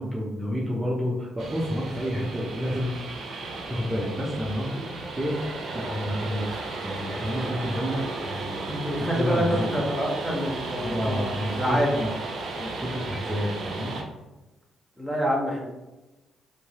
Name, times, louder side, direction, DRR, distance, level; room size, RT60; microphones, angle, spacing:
voice 1, 0.0-3.0 3.7-4.9 5.2-6.5 6.8-8.7 9.0-9.8 10.8-12.1 12.6-13.9, equal, 20° right, -4 dB, 0.6 m, -30 dB
sound 1, 1.4-14.0, right 3 dB, 60° right, 0.5 m, -34 dB
voice 2, 8.7-11.9 15.0-15.7, equal, 5° left, -2 dB, 0.9 m, -27 dB
3.0 x 2.6 x 2.2 m, 1.1 s
hypercardioid pair, 45°, 0 cm